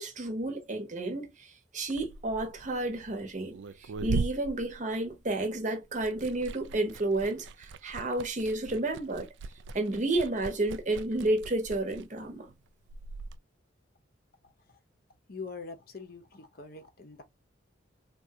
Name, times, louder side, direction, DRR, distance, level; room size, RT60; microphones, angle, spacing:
voice 1, 0.0-9.3 9.7-12.5, right 2 dB, 40° right, 0.8 m, -31 dB
Liquid, 1.8-5.5 5.8-13.4, right 4 dB, 70° right, 0.3 m, -40 dB
voice 2, 15.3-17.2, left 4 dB, 50° left, 0.7 m, -43 dB
3.6 x 2.4 x 2.6 m
head